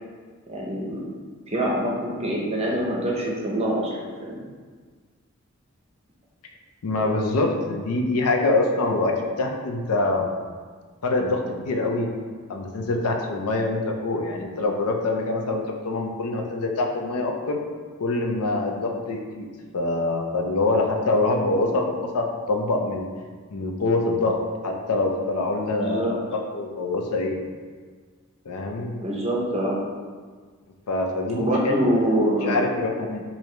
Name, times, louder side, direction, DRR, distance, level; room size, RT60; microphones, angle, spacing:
voice 1, 0.5-1.0 1.5-4.4 18.8-18.9 21.4-21.5 25.8-26.1 29.0-29.8 31.3-32.7, right 1 dB, 25° right, -3 dB, 0.6 m, -25 dB
voice 2, 6.8-10.3 11.0-12.1 12.5-17.6 18.0-19.5 19.7-23.1 23.5-24.4 24.6-27.4 28.5-28.9 30.9-31.7 32.4-33.2, left 2 dB, 85° left, 2 dB, 0.5 m, -25 dB
4.7 x 2.7 x 3.2 m, 1.6 s
head